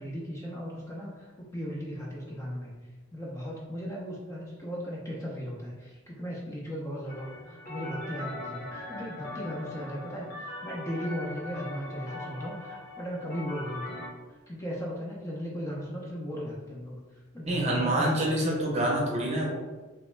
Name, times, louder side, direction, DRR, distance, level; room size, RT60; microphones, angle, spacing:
voice 1, 0.0-2.7 3.1-14.1 14.5-17.0 17.3-18.8, equal, 15° left, -4 dB, 0.4 m, -37 dB
sound 1, 7.1-14.1, left 2 dB, 50° left, 0.9 m, -40 dB
voice 2, 17.5-19.5, right 1 dB, 30° right, -3 dB, 0.7 m, -26 dB
3.0 x 2.2 x 3.1 m, 1.3 s
head